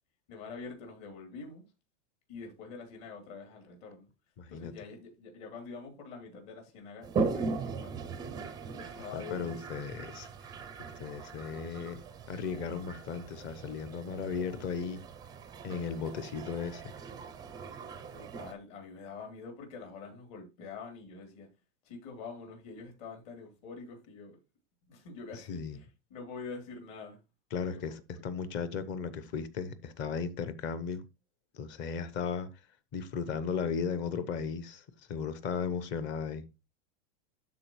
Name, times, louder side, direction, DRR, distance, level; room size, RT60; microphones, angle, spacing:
voice 1, 0.3-1.6 2.3-4.1 4.5-8.0 8.8-9.5 18.1-21.5 21.8-24.4 24.8-27.2 27.6-27.8, left 4 dB, 55° left, 3.3 m, -45 dB
voice 2, 4.4-4.7 9.1-10.5 10.9-12.0 12.3-15.0 15.6-16.8 25.5-25.8 27.5-31.0 31.5-32.5 32.9-36.5, left 6 dB, 35° left, 0.8 m, -36 dB
Toilet flush, 7.0-18.5, right 4 dB, 10° right, 0.4 m, -39 dB
12.0 x 4.1 x 3.1 m
supercardioid pair, 145°, 35 cm